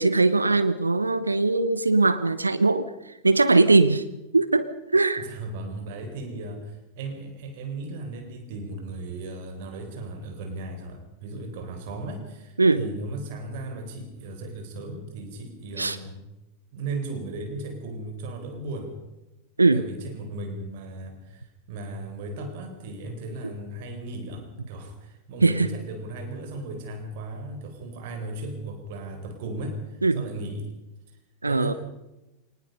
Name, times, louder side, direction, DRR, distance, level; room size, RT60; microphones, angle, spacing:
voice 1, 0.0-2.9 3.2-4.0 4.3-5.3 12.6-12.9 15.8-16.0 19.6-19.8 23.4-23.5 25.4-25.7 30.0-30.3 31.4-31.7, right 3 dB, 80° right, 13 dB, 0.9 m, -20 dB
voice 2, 5.2-16.2 16.7-18.9 19.7-30.7 31.5-31.8, right 2 dB, 50° right, 5 dB, 4.2 m, -36 dB
24.0 x 19.5 x 5.5 m, 1.0 s
figure-of-eight pair, 90°, 0 cm